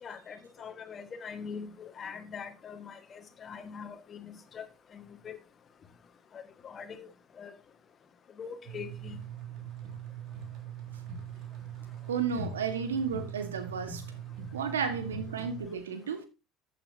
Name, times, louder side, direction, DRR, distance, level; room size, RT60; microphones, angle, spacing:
voice 1, 0.0-4.7 4.9-5.4 6.3-7.1 7.4-7.5 8.4-9.2, left 6 dB, 40° left, 1.8 m, -43 dB
sound 1, 8.6-15.7, right 6 dB, 55° right, 3.1 m, -41 dB
voice 2, 12.1-14.0 14.5-16.3, right 6 dB, 80° right, 1.5 m, -32 dB
14.5 x 8.5 x 2.8 m
figure-of-eight pair, 65°, 0 cm